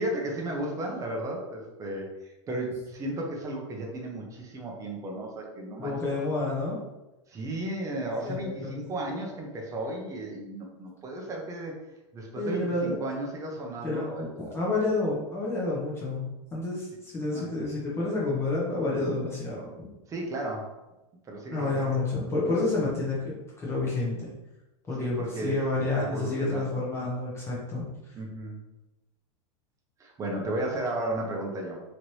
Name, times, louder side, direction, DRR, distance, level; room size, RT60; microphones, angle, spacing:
voice 1, 0.0-5.9 7.3-11.8 12.1-14.5 17.3-17.4 20.1-20.7 21.2-22.0 25.0-25.5 26.0-26.8 28.2-28.7 30.0-31.8, right 1 dB, 20° right, 0 dB, 0.7 m, -34 dB
voice 2, 5.8-6.8 8.2-8.8 12.3-13.0 13.8-19.9 21.5-24.3 24.9-28.1, left 2 dB, 15° left, -6 dB, 0.8 m, -29 dB
3.0 x 2.5 x 3.1 m, 1.0 s
supercardioid pair, 135°, 17 cm